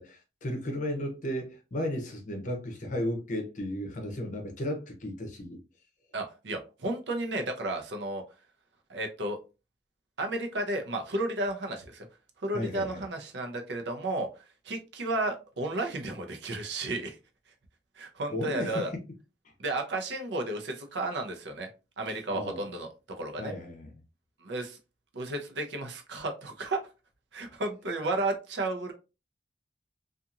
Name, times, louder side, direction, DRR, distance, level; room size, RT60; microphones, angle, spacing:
voice 1, 0.0-5.6 12.5-13.0 18.3-18.9 22.1-22.6 23.4-23.9, left 1 dB, 45° left, 0.7 m, -34 dB
voice 2, 6.1-8.2 8.9-9.4 10.2-12.1 12.4-14.3 14.6-17.2 18.0-18.9 19.6-21.7 22.0-23.5 24.4-24.8 25.1-26.8 27.3-28.9, right 2 dB, 75° right, 0.6 m, -33 dB
2.8 x 2.5 x 2.4 m
head